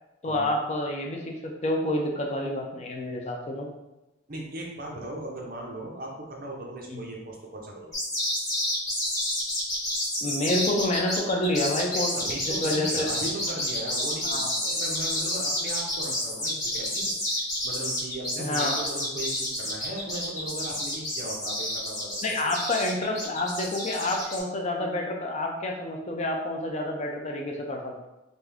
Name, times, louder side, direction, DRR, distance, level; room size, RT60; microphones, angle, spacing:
voice 1, 0.2-3.7 6.9-7.0 10.2-13.1 14.2-14.5 18.4-18.8 22.2-28.1, left 1 dB, 35° left, 1 dB, 0.5 m, -28 dB
voice 2, 4.3-8.0 11.9-22.4, right 1 dB, 50° right, -1 dB, 0.7 m, -38 dB
sound 1, 7.9-24.4, left 1 dB, 20° left, 1.4 m, -29 dB
3.5 x 2.6 x 3.4 m, 0.97 s
head